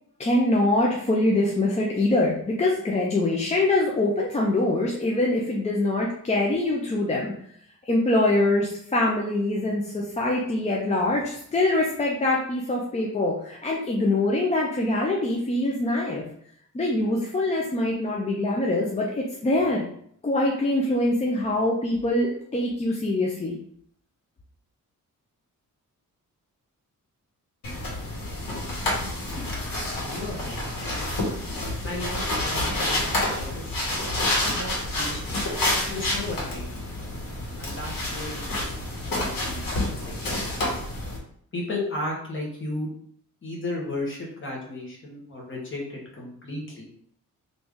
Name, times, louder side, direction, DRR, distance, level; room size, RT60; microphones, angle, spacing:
voice 1, 0.2-7.3 7.9-16.2 16.7-19.8 20.2-23.6, left 2 dB, 20° left, -3 dB, 0.4 m, -24 dB
sound 1, 27.6-41.2, left 1 dB, 85° left, 1.3 m, -28 dB
voice 2, 29.0-29.5 30.0-30.9 31.8-33.7 34.2-36.6 37.6-38.7 39.0-40.8 41.5-42.9 43.4-46.9, left 2 dB, 35° left, -2 dB, 1.1 m, -35 dB
3.2 x 2.6 x 3.5 m, 0.66 s
wide cardioid pair, 150°, 33 cm